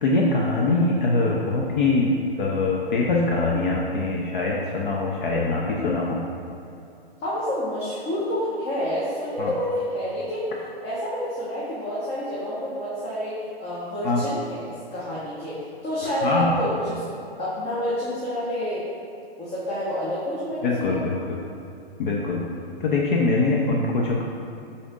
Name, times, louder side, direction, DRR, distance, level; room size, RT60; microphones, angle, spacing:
voice 1, 0.0-6.2 9.4-9.5 14.0-14.3 16.0-16.5 20.6-21.4 22.0-22.5 22.8-24.2, left 3 dB, 50° left, -2 dB, 0.8 m, -23 dB
voice 2, 7.2-10.5 10.8-13.3 13.6-14.6 14.9-17.1 17.4-18.8 19.4-21.1, equal, 30° left, -9 dB, 1.5 m, -28 dB
11.0 x 4.3 x 2.5 m, 2.7 s
figure-of-eight pair, 125°, 31 cm